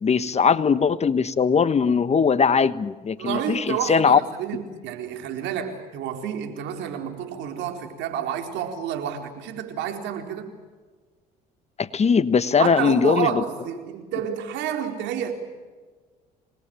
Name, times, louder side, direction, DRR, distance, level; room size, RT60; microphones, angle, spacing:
voice 1, 0.0-4.2 11.8-13.4, left 6 dB, 35° left, 1.3 m, -20 dB
voice 2, 3.2-10.5 12.6-15.3, right 9 dB, 70° right, 4.4 m, -29 dB
27.0 x 20.5 x 9.0 m
supercardioid pair, 70°, 19 cm